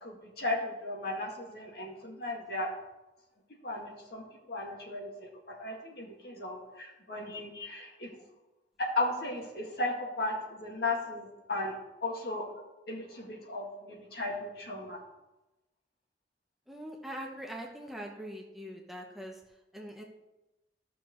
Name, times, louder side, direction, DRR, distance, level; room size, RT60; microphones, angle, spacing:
voice 1, 0.0-2.7 3.6-8.1 8.8-11.8 12.0-15.0, left 2 dB, 60° left, -1 dB, 1.9 m, -36 dB
voice 2, 16.7-19.4 19.7-20.0, equal, ahead, 0 dB, 0.8 m, -42 dB
14.5 x 6.2 x 3.1 m, 1.0 s
head